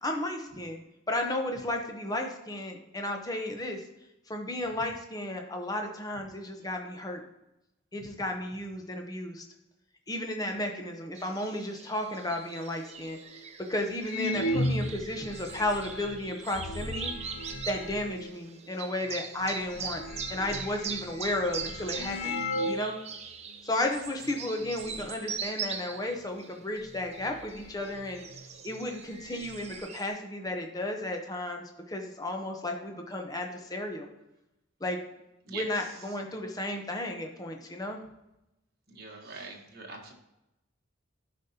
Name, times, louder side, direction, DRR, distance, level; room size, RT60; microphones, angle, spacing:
voice 1, 0.0-0.8 1.1-3.8 4.3-7.2 7.9-9.4 10.1-13.2 13.7-17.1 17.7-20.0 20.3-22.4 22.7-23.0 23.6-28.2 28.6-34.1 34.8-35.0 35.5-38.0, left 1 dB, 20° left, 3 dB, 0.8 m, -33 dB
sound 1, 11.1-30.1, right 6 dB, 30° right, 0.5 m, -42 dB
sound 2, 13.3-13.4 14.0-18.3 19.1-19.2 19.4-22.9 23.2-23.3 24.0-24.3 24.6-25.1 26.4-26.5 26.9-28.4 28.7-28.8 29.1-29.8, left 1 dB, 70° left, 0.6 m, -36 dB
voice 2, 38.9-40.1, right 4 dB, 50° right, 0 dB, 1.3 m, -42 dB
11.5 x 5.2 x 2.8 m, 0.91 s
head